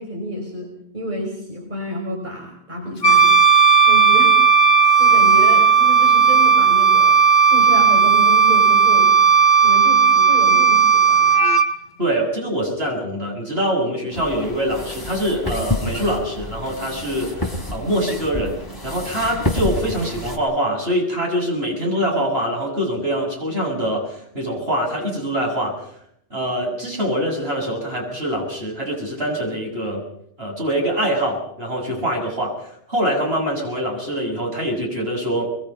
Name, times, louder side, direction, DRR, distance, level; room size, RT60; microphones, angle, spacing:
voice 1, 0.0-3.4 3.9-4.4 5.0-7.2 7.5-9.1 9.6-11.4, equal, 50° right, 0 dB, 5.8 m, -29 dB
Wind instrument woodwind instrument, 3.0-11.7, right 6 dB, 80° left, 1.5 m, -14 dB
voice 2, 12.0-18.6 18.8-25.7 26.3-30.0 30.4-32.6 32.9-35.5, equal, 80° right, 0 dB, 8.1 m, -24 dB
sound 1, 14.1-20.4, left 1 dB, 20° left, 4.6 m, -29 dB
26.5 x 22.0 x 5.6 m, 0.72 s
omnidirectional pair, 1.0 m